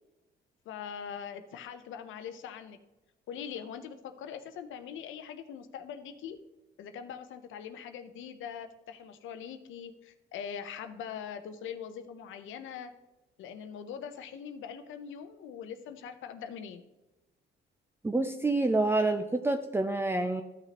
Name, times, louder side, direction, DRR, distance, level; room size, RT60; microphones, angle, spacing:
voice 1, 0.7-2.8 3.3-6.4 6.8-12.9 13.4-16.8, left 7 dB, 80° left, 9 dB, 0.7 m, -42 dB
voice 2, 18.0-20.4, right 2 dB, 10° right, 7 dB, 0.5 m, -27 dB
13.0 x 5.9 x 2.9 m, 1.0 s
cardioid pair, 90°, 20 cm